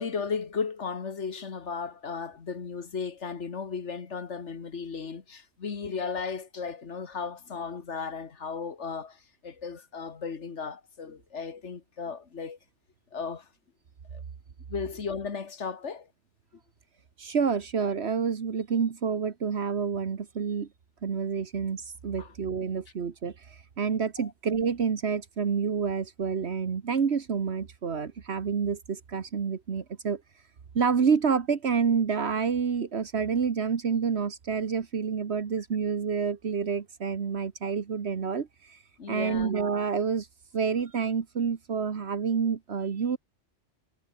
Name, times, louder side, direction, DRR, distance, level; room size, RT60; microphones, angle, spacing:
voice 1, 0.0-12.6 13.1-13.5 14.1-14.2 14.7-16.1 22.2-22.3 24.2-24.3 39.0-39.5, left 5 dB, 75° left, 2.0 m, -35 dB
voice 2, 17.2-20.7 21.0-30.2 30.7-38.8 39.1-40.3 40.5-43.2, right 6 dB, 65° right, 1.5 m, -28 dB
omnidirectional pair, 1.2 m